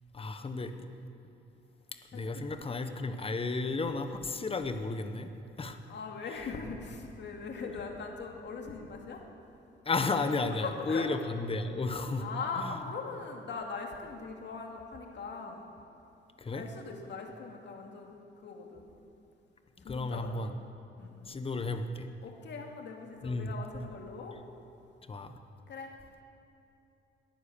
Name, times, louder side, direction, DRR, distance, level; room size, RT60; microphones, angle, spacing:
voice 1, 0.1-0.7 2.1-5.3 5.6-5.8 9.8-12.3 12.6-12.8 16.4-16.6 19.9-20.5 21.3-22.1 23.2-23.5 25.1-25.3, left 3 dB, 30° left, 8 dB, 1.2 m, -33 dB
voice 2, 2.1-2.5 5.9-9.2 10.6-11.1 12.2-15.6 16.5-18.9 19.8-20.5 21.0-21.3 22.2-24.4 25.7-25.9, left 4 dB, 60° left, 2 dB, 2.5 m, -41 dB
18.0 x 10.5 x 7.0 m, 2.9 s
cardioid pair, 90°, 20 cm